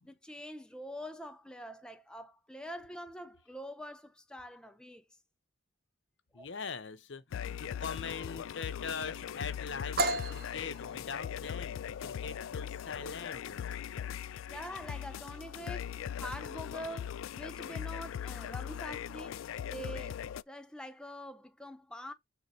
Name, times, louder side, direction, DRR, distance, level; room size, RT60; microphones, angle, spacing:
voice 1, 0.0-5.2 6.3-6.5 14.5-22.1, equal, 5° left, 0.4 m, -45 dB
voice 2, 6.3-13.8, left 5 dB, 65° left, 0.8 m, -42 dB
sound 1, 7.3-20.4, left 9 dB, 80° left, 0.3 m, -40 dB
sound 2, 10.0-17.6, right 2 dB, 50° right, 0.9 m, -39 dB
6.7 x 3.7 x 4.1 m
head